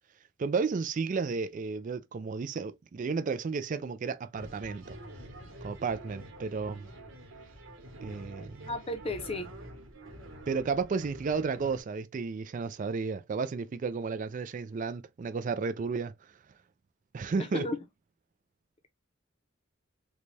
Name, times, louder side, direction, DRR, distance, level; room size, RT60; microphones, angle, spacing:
voice 1, 0.4-5.0 5.6-6.9 8.0-8.7 10.5-16.1 17.1-17.6, right 5 dB, 40° right, 0.3 m, -33 dB
sound 1, 4.4-11.8, right 1 dB, 75° right, 1.1 m, -47 dB
voice 2, 8.7-9.5 17.4-17.8, left 2 dB, 30° left, 0.6 m, -34 dB
3.9 x 2.2 x 3.1 m
head